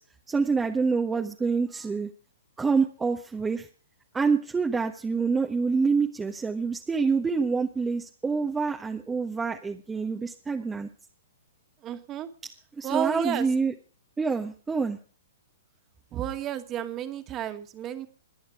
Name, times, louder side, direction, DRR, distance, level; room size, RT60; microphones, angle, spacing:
voice 1, 0.3-2.1 2.6-3.7 4.1-10.9 12.8-13.7 14.2-15.0, right 4 dB, 10° right, 3 dB, 1.4 m, -26 dB
voice 2, 11.8-12.3 12.8-13.5 16.1-18.1, right 11 dB, 25° right, 8 dB, 2.0 m, -31 dB
22.0 x 8.8 x 4.8 m, 0.40 s
figure-of-eight pair, 120°, 0 cm